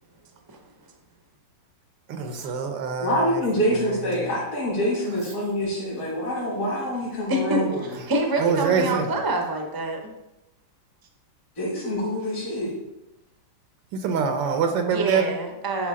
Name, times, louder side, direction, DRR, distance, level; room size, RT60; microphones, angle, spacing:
voice 1, 2.1-3.4 3.9-4.3 8.4-9.1 13.9-15.3, right 6 dB, 85° right, 5 dB, 1.5 m, -25 dB
voice 2, 3.0-7.9 11.6-12.7, equal, 55° left, -5 dB, 2.8 m, -26 dB
voice 3, 7.3-7.6 8.1-10.0 14.9-15.9, right 1 dB, 25° right, 3 dB, 0.5 m, -25 dB
11.0 x 4.7 x 3.7 m, 0.95 s
omnidirectional pair, 1.9 m